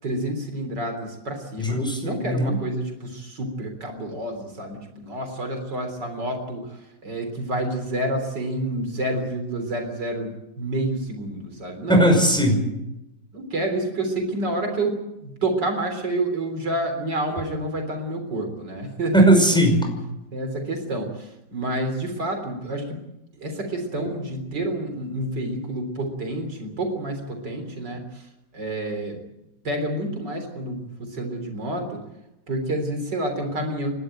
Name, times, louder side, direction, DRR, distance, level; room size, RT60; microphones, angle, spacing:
voice 1, 0.0-12.1 13.3-19.3 20.3-23.0 23.3-29.2 29.6-32.0 32.5-33.9, right 1 dB, 70° right, 5 dB, 4.3 m, -29 dB
voice 2, 1.6-2.6 11.9-12.6 19.1-19.9, right 1 dB, ahead, 3 dB, 5.6 m, -18 dB
29.0 x 13.0 x 9.1 m, 0.93 s
omnidirectional pair, 2.0 m